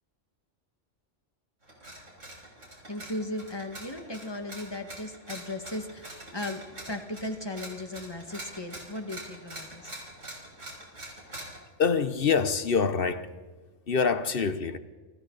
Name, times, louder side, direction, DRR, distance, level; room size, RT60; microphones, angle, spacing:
sound 1, 1.6-11.6, right 1 dB, 75° right, 6.3 m, -44 dB
voice 1, 2.9-6.6 6.9-10.0, left 1 dB, 20° left, 1.9 m, -37 dB
voice 2, 11.8-13.3 13.9-14.8, left 5 dB, 50° left, 1.1 m, -25 dB
29.5 x 24.5 x 4.1 m
omnidirectional pair, 1.3 m